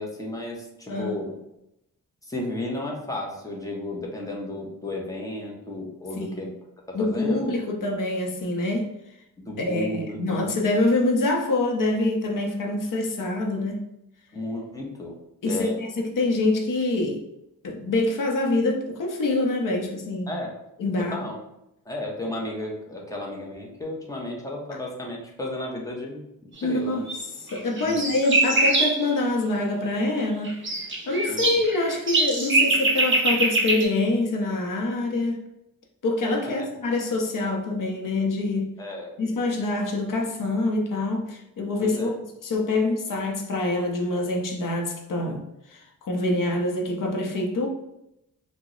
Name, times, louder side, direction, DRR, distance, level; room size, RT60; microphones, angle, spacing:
voice 1, 0.0-1.3 2.2-6.5 6.9-7.5 9.4-10.5 14.3-15.1 15.5-15.7 20.3-20.5 21.1-21.4 21.9-26.2 26.6-27.0 27.8-28.0 31.3-31.6 36.5-36.7 38.8-39.1 41.8-42.1, left 1 dB, 10° left, -1 dB, 0.5 m, -33 dB
voice 2, 0.9-1.2 6.2-6.5 6.9-8.9 9.6-13.8 15.4-17.2 17.6-20.3 20.8-21.2 24.7-24.8 26.6-27.1 27.4-30.6 31.1-35.4 36.0-38.7 39.2-42.1 42.4-47.7, left 2 dB, 65° left, 3 dB, 0.6 m, -25 dB
sound 1, 27.1-27.2 27.5-29.0 30.2-33.8, right 2 dB, 35° right, 0.6 m, -23 dB
2.8 x 2.0 x 3.7 m, 0.84 s
wide cardioid pair, 170°, 35 cm